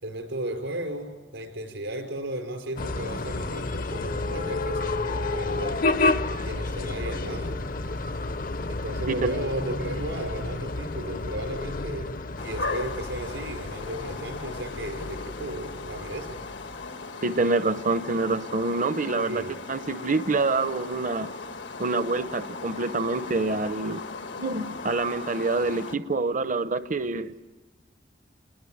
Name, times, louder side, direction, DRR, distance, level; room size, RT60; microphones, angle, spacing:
voice 1, 0.0-6.0 6.4-7.6 8.7-16.4 19.2-19.5, right 1 dB, 85° right, 5 dB, 5.2 m, -35 dB
sound 1, 2.8-17.0, left 2 dB, 50° left, 0.8 m, -31 dB
sound 2, 12.4-26.0, left 3 dB, 80° left, 1.7 m, -38 dB
voice 2, 17.2-21.3 21.8-24.0 24.4-27.5, right 3 dB, 45° right, 12 dB, 0.8 m, -26 dB
28.5 x 21.0 x 9.2 m, 1.2 s
head